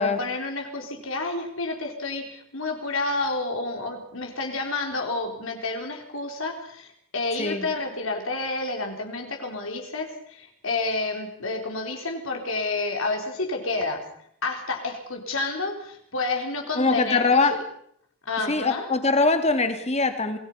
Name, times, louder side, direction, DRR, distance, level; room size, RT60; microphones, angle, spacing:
voice 1, 0.0-14.0 14.4-17.6 18.3-18.9, left 3 dB, 70° left, 2 dB, 4.1 m, -30 dB
voice 2, 16.8-17.5 18.5-20.4, left 3 dB, 30° left, 8 dB, 2.3 m, -22 dB
27.0 x 19.5 x 5.7 m, 0.68 s
head